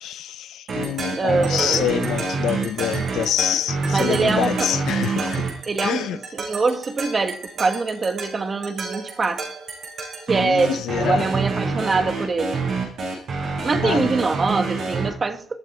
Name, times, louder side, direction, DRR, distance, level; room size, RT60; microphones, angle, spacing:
voice 1, 0.0-5.5 5.8-6.2 10.4-11.2 13.8-14.1, left 11 dB, 80° left, 0.6 m, -26 dB
sound 1, 0.7-15.1, right 4 dB, 65° right, 7.4 m, -27 dB
voice 2, 1.2-1.9 3.9-4.7 5.1-5.4 5.7-9.5 10.3-12.6 13.6-15.6, right 4 dB, 35° right, 1.5 m, -24 dB
21.0 x 11.0 x 4.3 m
cardioid pair, 90°, 0 cm